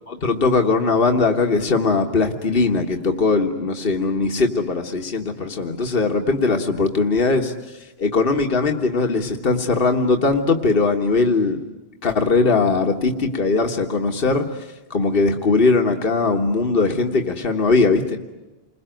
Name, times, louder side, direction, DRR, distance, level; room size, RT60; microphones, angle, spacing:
voice 1, 0.1-7.5 8.0-11.6 12.0-14.5 14.9-18.2, left 3 dB, 60° left, 4 dB, 1.8 m, -20 dB
28.5 x 22.0 x 9.2 m, 1.1 s
omnidirectional pair, 1.1 m